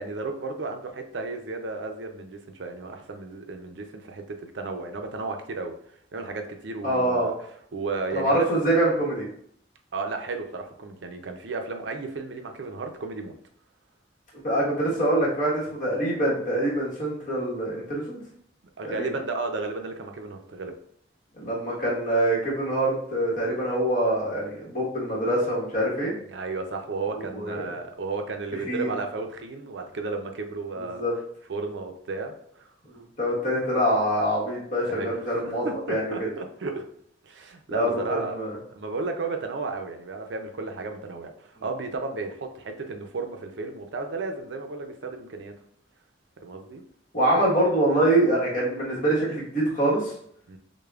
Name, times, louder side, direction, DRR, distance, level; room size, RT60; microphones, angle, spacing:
voice 1, 0.0-5.7 6.1-7.3 7.7-8.5 9.9-13.3 18.8-20.7 26.3-31.0 31.5-32.7 34.8-36.8 37.2-38.4 38.8-45.5 46.4-46.8 50.5-50.6, right 3 dB, 70° right, 5 dB, 0.5 m, -33 dB
voice 2, 6.8-7.3 8.1-9.2 14.4-18.2 18.8-19.1 21.4-26.1 27.3-27.6 28.7-28.9 30.8-31.1 33.2-36.3 37.7-38.6 47.1-50.1, right 1 dB, 45° left, -5 dB, 1.3 m, -25 dB
6.4 x 2.2 x 2.4 m, 0.66 s
head